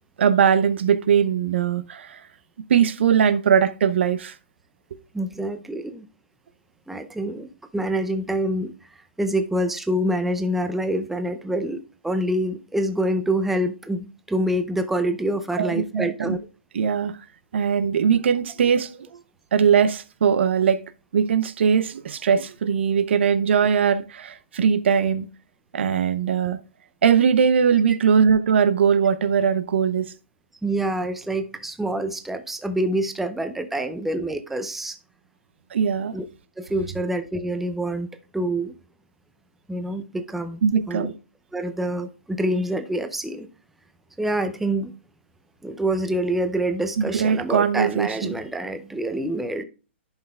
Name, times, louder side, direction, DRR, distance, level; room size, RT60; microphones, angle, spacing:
voice 1, 0.2-2.2 2.7-4.3 15.6-16.4 16.7-17.2 17.5-18.9 19.5-20.8 21.1-25.3 25.7-26.6 27.0-30.1 35.7-36.1 40.6-41.1 47.0-48.3, right 7 dB, 65° right, 0.6 m, -20 dB
voice 2, 5.1-6.1 6.9-8.7 9.2-16.4 30.6-35.0 36.1-36.2 36.6-38.1 38.3-38.7 39.7-40.6 40.9-41.1 41.5-43.5 44.2-44.9 45.6-49.6, right 1 dB, 5° right, 0.5 m, -26 dB
11.0 x 5.6 x 2.3 m
hypercardioid pair, 140°, 7 cm